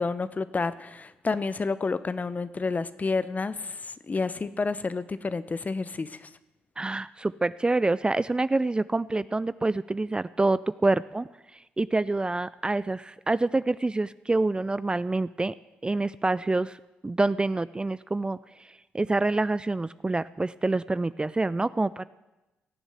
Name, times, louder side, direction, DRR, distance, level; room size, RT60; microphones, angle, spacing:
voice 1, 0.0-6.3, left 4 dB, 35° left, 15 dB, 0.9 m, -30 dB
voice 2, 6.8-11.3 11.8-15.5 15.8-16.8 17.0-18.4 18.9-22.1, right 2 dB, 20° right, 17 dB, 0.4 m, -26 dB
17.5 x 7.2 x 8.2 m, 1.0 s
hypercardioid pair, 50°, 5 cm